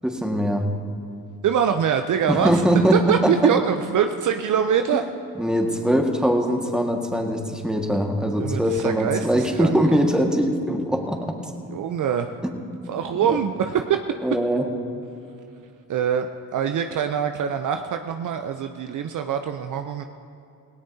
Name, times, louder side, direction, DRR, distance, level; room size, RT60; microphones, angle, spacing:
voice 1, 0.0-0.7 2.3-3.3 5.4-11.4 12.4-12.5 13.2-13.4 14.2-14.7, equal, ahead, 2 dB, 1.8 m, -22 dB
voice 2, 1.4-5.0 8.4-9.8 11.7-12.4 12.9-14.2 15.9-20.1, right 8 dB, 50° right, 7 dB, 0.7 m, -24 dB
17.5 x 17.5 x 2.8 m, 2.7 s
hypercardioid pair, 55°, 41 cm